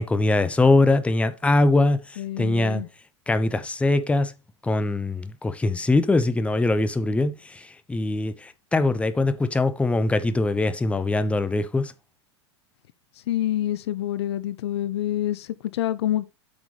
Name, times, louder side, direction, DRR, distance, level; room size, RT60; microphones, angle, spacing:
voice 1, 0.0-2.8 3.3-4.3 4.6-11.9, left 2 dB, 10° left, 0.7 m, -22 dB
voice 2, 2.2-2.9 13.3-16.3, left 12 dB, 65° left, 0.5 m, -27 dB
8.7 x 5.9 x 3.2 m
figure-of-eight pair, 90°, 15 cm